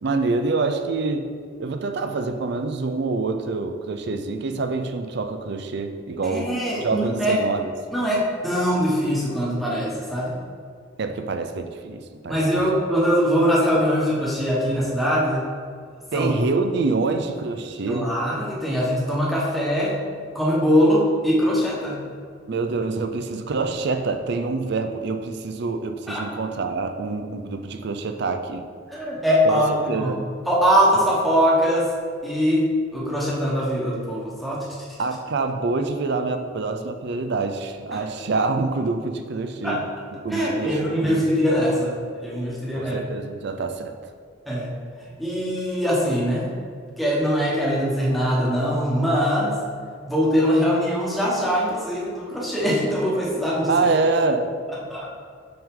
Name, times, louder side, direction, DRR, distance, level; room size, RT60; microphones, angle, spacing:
voice 1, 0.0-1.3 1.6-6.5 6.8-7.7 11.0-12.7 16.1-18.1 22.5-28.7 29.5-30.2 35.0-39.9 40.2-41.2 42.7-43.9 53.7-54.5, right 3 dB, 60° right, 7 dB, 0.5 m, -26 dB
voice 2, 6.2-7.3 7.9-10.4 12.3-15.5 16.1-16.3 17.9-20.0 20.3-22.0 26.1-26.2 28.9-30.1 30.5-31.9 32.2-34.7 37.9-38.0 39.6-39.8 40.3-43.0 44.5-44.7 45.2-46.6 47.0-49.6 50.0-53.7 54.9-55.1, equal, ahead, -6 dB, 1.2 m, -22 dB
5.8 x 5.3 x 3.7 m, 2.1 s
head